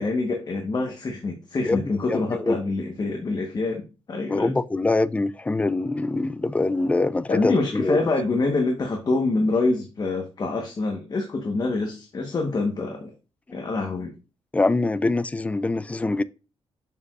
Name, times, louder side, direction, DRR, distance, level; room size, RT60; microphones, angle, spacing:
voice 1, 0.0-4.5 7.3-13.1 13.5-14.1, left 3 dB, 40° left, 1.2 m, -26 dB
voice 2, 1.6-2.6 4.3-8.0 13.5-13.6 14.5-16.2, left 2 dB, 15° left, 0.3 m, -24 dB
7.0 x 6.6 x 2.5 m
wide cardioid pair, 125°, 11 cm